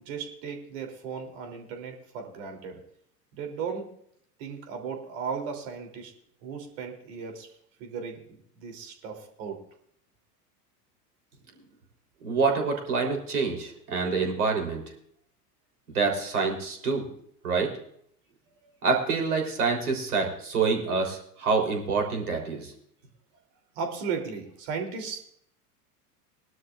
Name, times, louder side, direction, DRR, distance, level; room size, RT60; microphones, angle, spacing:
voice 1, 0.0-2.8 3.3-3.9 4.4-6.1 6.4-7.5 7.8-9.6 23.7-25.2, right 6 dB, 50° right, 4 dB, 3.2 m, -36 dB
voice 2, 12.2-14.8 15.9-17.1 17.4-17.7 18.8-22.7, right 4 dB, 65° right, 2 dB, 3.6 m, -26 dB
21.0 x 12.0 x 2.5 m, 0.67 s
figure-of-eight pair, 85°, 47 cm